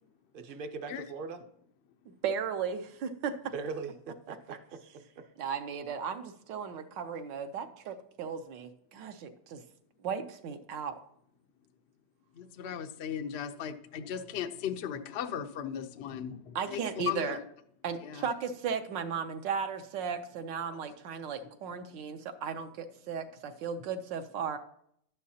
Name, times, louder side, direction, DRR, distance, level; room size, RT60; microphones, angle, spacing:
voice 1, 0.3-1.4 3.5-4.8 5.2-5.3, right 4 dB, 50° right, 7 dB, 0.6 m, -40 dB
voice 2, 2.2-3.5 4.3-4.4 5.4-9.6 10.0-11.0 16.5-17.4 17.8-24.6, right 6 dB, 80° right, 7 dB, 1.4 m, -36 dB
voice 3, 12.3-17.4 18.0-18.3 20.7-20.8, left 8 dB, 80° left, 7 dB, 0.5 m, -37 dB
11.0 x 9.3 x 2.8 m, 0.69 s
omnidirectional pair, 2.0 m